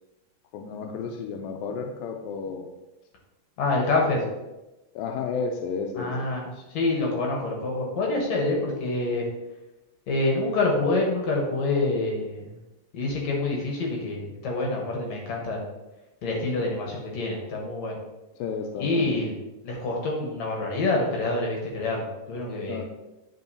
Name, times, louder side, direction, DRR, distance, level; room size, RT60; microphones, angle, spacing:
voice 1, 0.5-2.7 4.1-4.2 5.0-6.3 18.4-19.2 22.7-22.9, left 5 dB, 90° left, 3 dB, 2.3 m, -32 dB
voice 2, 3.6-4.2 6.0-9.2 10.1-12.5 12.9-15.7 16.2-18.0 18.8-19.4 19.6-22.9, left 2 dB, 65° left, -1 dB, 2.0 m, -26 dB
9.1 x 5.1 x 2.7 m, 1.0 s
omnidirectional pair, 4.0 m